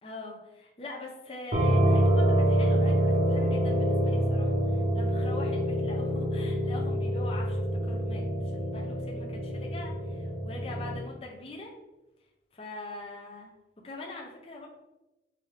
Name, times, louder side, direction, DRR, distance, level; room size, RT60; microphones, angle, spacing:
voice 1, 0.0-11.7 12.5-13.5 13.8-14.7, left 2 dB, 35° left, -1 dB, 0.6 m, -43 dB
sound 1, 1.5-11.0, right 1 dB, 55° right, 0.8 m, -26 dB
5.3 x 2.7 x 3.2 m, 1.0 s
head